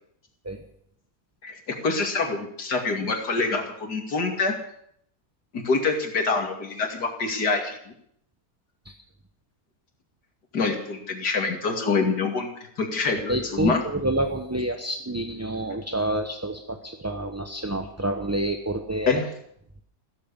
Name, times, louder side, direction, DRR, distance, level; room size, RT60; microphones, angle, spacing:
voice 1, 1.4-4.6 5.5-7.9 10.5-12.5 12.8-13.8 19.1-19.3, left 4 dB, 80° left, 3 dB, 3.0 m, -26 dB
voice 2, 13.3-19.2, right 1 dB, 15° right, 5 dB, 0.8 m, -28 dB
15.5 x 13.5 x 7.0 m, 0.69 s
omnidirectional pair, 1.7 m